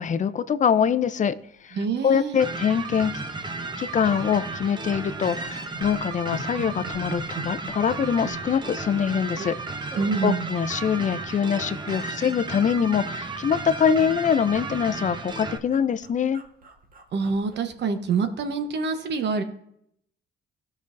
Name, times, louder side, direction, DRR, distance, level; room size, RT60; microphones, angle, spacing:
voice 1, 0.0-1.4 1.6-1.8 2.0-3.1 3.8-9.6 9.9-16.4, left 7 dB, 40° left, 13 dB, 0.5 m, -24 dB
sound 1, 1.1-1.3 1.6-1.7 1.9-2.1 2.6-3.3 3.6-3.8 4.1-5.0 5.3-9.6 9.9-10.1 10.7-11.5 11.8-12.0 12.3-13.4 13.7-18.2 18.6-18.8, right 3 dB, 45° right, 1.3 m, -43 dB
voice 2, 1.7-2.4 10.0-10.5 17.1-19.4, right 5 dB, 60° right, 8 dB, 1.0 m, -26 dB
sound 2, 2.4-15.6, right 3 dB, 20° right, 0.7 m, -34 dB
14.0 x 5.3 x 2.5 m, 0.72 s
cardioid pair, 90°, 20 cm